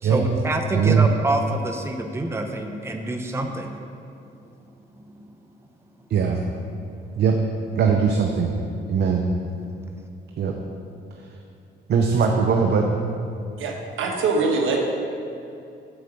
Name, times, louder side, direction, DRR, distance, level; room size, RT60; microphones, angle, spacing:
voice 1, 0.0-3.8 5.0-5.3 6.7-7.0, right 2 dB, 15° right, 3 dB, 0.7 m, -27 dB
voice 2, 0.7-1.1 6.1-6.4 7.2-7.4 7.7-8.5 8.9-9.2 10.4-10.5 11.9-12.9, right 6 dB, 55° right, 2 dB, 0.7 m, -20 dB
voice 3, 13.6-14.8, right 4 dB, 80° right, 0 dB, 1.3 m, -23 dB
8.0 x 5.0 x 6.9 m, 2.6 s
cardioid pair, 90°, 20 cm